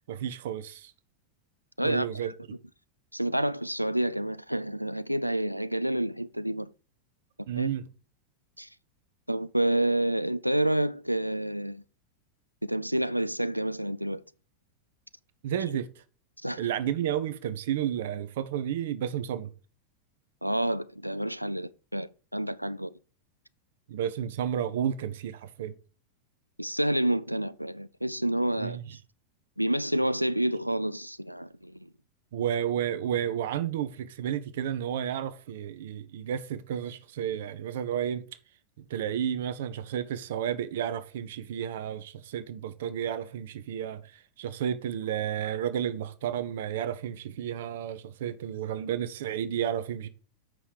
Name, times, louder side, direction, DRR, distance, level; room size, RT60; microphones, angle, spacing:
voice 1, 0.1-0.9 1.8-2.3 7.5-7.8 15.4-15.9 16.6-19.5 23.9-25.7 28.6-29.0 32.3-38.2 38.8-50.1, right 9 dB, 55° right, 0.6 m, -32 dB
voice 2, 1.8-2.3 3.1-6.7 7.6-7.7 8.6-8.7 9.3-11.8 12.6-14.2 15.5-15.6 16.4-16.6 20.4-22.9 26.6-28.8 29.6-31.9, right 1 dB, 90° right, 0.3 m, -29 dB
7.5 x 5.5 x 4.7 m
figure-of-eight pair, 90°, 0 cm